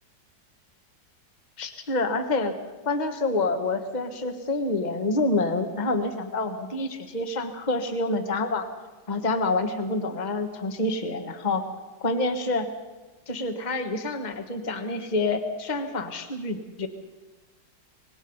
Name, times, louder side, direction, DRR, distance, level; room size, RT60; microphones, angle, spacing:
voice 1, 1.6-2.5 2.8-8.7 9.1-11.6 12.0-12.7 13.3-16.9, left 2 dB, 25° left, 6 dB, 1.5 m, -27 dB
25.0 x 21.0 x 5.4 m, 1.2 s
omnidirectional pair, 2.0 m